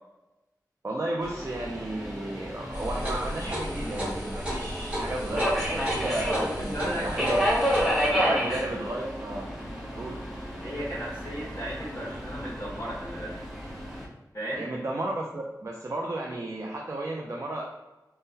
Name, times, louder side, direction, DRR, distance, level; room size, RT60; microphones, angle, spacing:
voice 1, 0.8-7.5 8.2-9.5 9.9-10.2 14.5-17.7, right 1 dB, 45° right, -2 dB, 0.4 m, -33 dB
Subway metro underground, 1.2-14.0, equal, ahead, 0.9 m, -31 dB
sound 1, 2.7-8.1, equal, 20° right, 1.2 m, -34 dB
voice 2, 6.5-7.4 8.1-8.6 10.6-13.4 14.3-14.6, equal, 35° left, -8 dB, 0.9 m, -35 dB
3.6 x 2.1 x 2.7 m, 1.0 s
wide cardioid pair, 60°, 7 cm